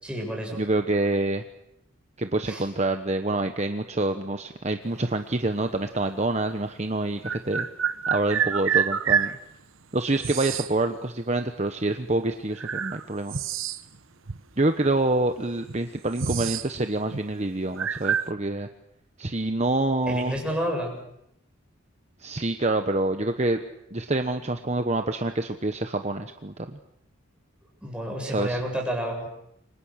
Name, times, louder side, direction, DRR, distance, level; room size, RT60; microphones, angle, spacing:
voice 1, 0.0-0.6 2.5-2.7 20.1-21.0 27.8-29.3, equal, 5° right, 0 dB, 7.6 m, -30 dB
voice 2, 0.6-1.4 2.2-7.7 8.1-9.3 9.9-13.4 14.6-18.7 19.2-20.4 22.2-23.6 23.9-26.8 28.3-28.6, right 2 dB, 35° right, 7 dB, 1.1 m, -26 dB
sound 1, 6.0-6.1 7.2-9.4 10.2-10.7 11.8-12.0 12.6-14.0 14.3-14.4 15.2-15.3 15.6-16.7 17.0-17.2 17.8-18.3, right 8 dB, 80° right, 1.1 m, -27 dB
29.5 x 25.0 x 6.6 m, 0.77 s
head